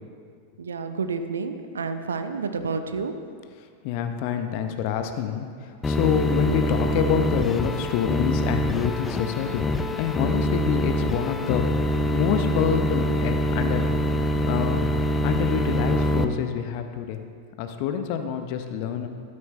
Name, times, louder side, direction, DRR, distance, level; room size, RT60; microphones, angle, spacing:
voice 1, 0.6-3.4, right 4 dB, 70° right, 9 dB, 0.6 m, -30 dB
voice 2, 3.8-9.6 10.0-13.9 14.4-14.8 15.2-17.2 17.6-19.1, left 8 dB, 45° left, 7 dB, 0.7 m, -27 dB
sound 1, 5.8-16.2, equal, 15° left, 0.5 m, -25 dB
12.5 x 8.7 x 3.2 m, 2.1 s
figure-of-eight pair, 90°, 0 cm